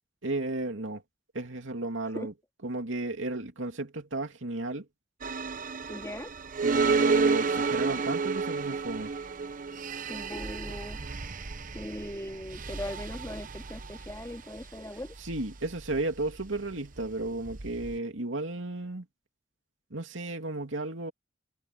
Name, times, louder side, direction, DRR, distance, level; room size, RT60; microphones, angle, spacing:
voice 1, 0.2-1.0 1.3-2.3 2.6-4.9 6.6-9.1 15.2-19.1 19.9-21.1, right 2 dB, 85° right, 2.7 m, -33 dB
sound 1, 5.2-18.0, right 4 dB, 45° right, 1.0 m, -31 dB
voice 2, 5.9-6.3 10.1-11.0 11.7-15.1, left 1 dB, 15° left, 3.0 m, -39 dB
head